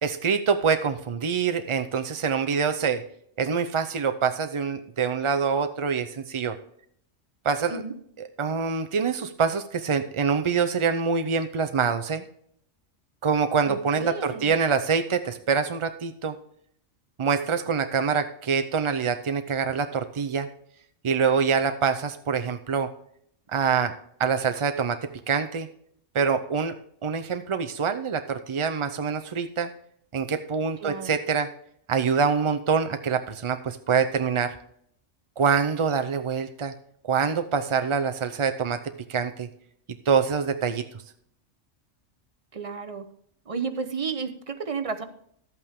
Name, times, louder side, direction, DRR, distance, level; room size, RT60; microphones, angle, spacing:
voice 1, 0.0-3.0 3.4-6.6 7.4-7.8 8.4-12.2 13.2-16.4 17.2-20.5 21.0-22.9 23.5-23.9 24.2-25.7 26.1-26.7 27.0-29.7 30.1-31.5 31.9-34.5 35.4-36.7 37.1-39.5 40.1-40.8, right 6 dB, 55° right, 7 dB, 0.3 m, -25 dB
voice 2, 13.7-14.5 30.8-31.2 42.5-43.1 43.5-45.0, right 5 dB, 35° right, 9 dB, 0.7 m, -32 dB
12.0 x 8.4 x 3.6 m, 0.68 s
omnidirectional pair, 1.3 m